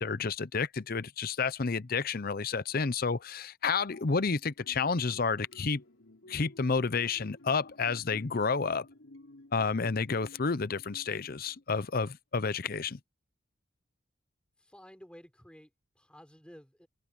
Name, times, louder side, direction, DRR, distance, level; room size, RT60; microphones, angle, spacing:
voice 1, 0.0-5.8 6.3-8.9 9.5-13.0, left 4 dB, 45° left, 0.7 m, -30 dB
sound 1, 4.6-11.6, left 1 dB, 80° left, 3.7 m, -55 dB
voice 2, 14.6-16.9, equal, 5° left, 4.3 m, -53 dB
open air
head